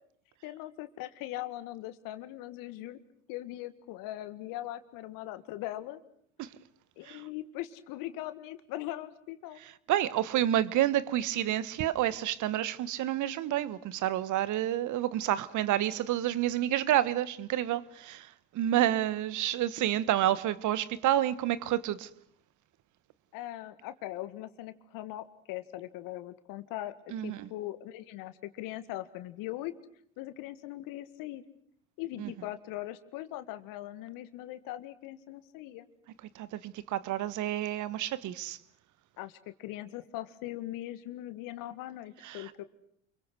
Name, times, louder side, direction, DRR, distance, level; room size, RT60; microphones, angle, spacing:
voice 1, 0.4-3.0 3.3-6.0 7.0-9.6 18.8-18.9 23.3-29.7 30.2-31.4 32.0-35.9 39.2-42.6, left 15 dB, 60° left, 1.9 m, -40 dB
voice 2, 9.9-18.3 18.5-22.1 27.1-27.5 32.2-32.3 36.4-38.6 42.2-42.4, right 12 dB, 50° right, 1.4 m, -29 dB
29.5 x 23.0 x 6.3 m
hypercardioid pair, 70°, 37 cm